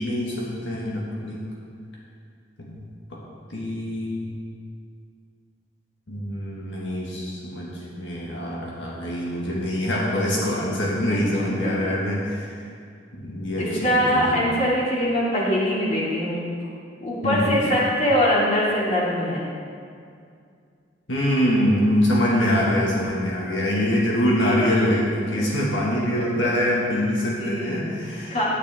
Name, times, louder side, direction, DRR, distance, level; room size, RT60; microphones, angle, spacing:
voice 1, 0.0-1.4 2.6-2.8 3.1-3.2 3.5-4.3 6.1-12.5 13.1-14.4 17.2-17.6 21.1-28.4, equal, 85° left, -4 dB, 1.8 m, -24 dB
voice 2, 11.1-11.7 13.6-16.4 17.0-19.4 25.3-25.7 26.2-26.3 27.4-27.8 28.3-28.4, equal, 40° left, -6 dB, 2.5 m, -23 dB
12.0 x 10.0 x 3.6 m, 2.3 s
head